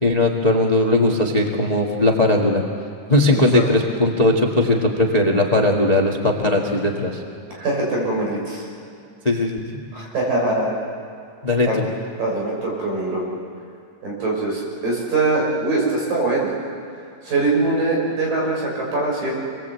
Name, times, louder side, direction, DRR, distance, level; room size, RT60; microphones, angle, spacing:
voice 1, 0.0-2.6 3.1-7.2 9.2-9.6 11.4-11.9, left 2 dB, 30° left, 0 dB, 0.7 m, -18 dB
voice 2, 7.5-8.7 9.9-10.7 11.7-11.8 12.2-13.2 14.0-16.6 17.2-19.3, right 2 dB, 75° right, -3 dB, 8.0 m, -22 dB
27.0 x 20.5 x 8.2 m, 2.4 s
omnidirectional pair, 4.0 m